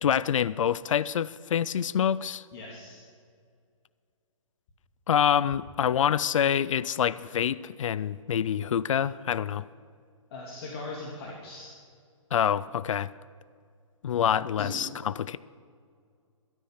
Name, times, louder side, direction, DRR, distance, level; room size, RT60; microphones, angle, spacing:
voice 1, 0.0-2.4 5.1-9.6 12.3-13.1 14.0-15.4, left 9 dB, 70° left, 0.5 m, -26 dB
voice 2, 2.5-3.0 10.3-11.7 14.6-14.8, left 3 dB, 45° left, 2.6 m, -39 dB
14.5 x 13.0 x 6.5 m
hypercardioid pair, 130°, 17 cm